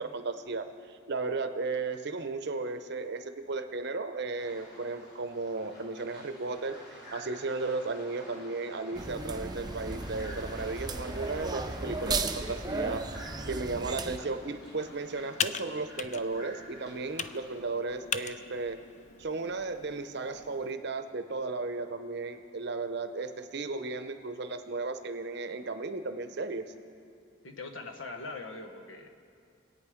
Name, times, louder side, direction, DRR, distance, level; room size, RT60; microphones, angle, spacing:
voice 1, 0.0-18.8 19.2-26.7, right 3 dB, 60° right, 9 dB, 0.8 m, -35 dB
sound 1, 4.4-17.7, equal, 55° left, 4.8 m, -50 dB
sound 2, 8.9-14.2, right 3 dB, 20° right, 0.6 m, -35 dB
Computer keyboard, 14.0-20.7, left 7 dB, 35° left, 0.4 m, -40 dB
voice 2, 27.4-29.1, left 3 dB, 75° left, 4 dB, 1.2 m, -41 dB
24.5 x 9.1 x 5.0 m, 2.4 s
head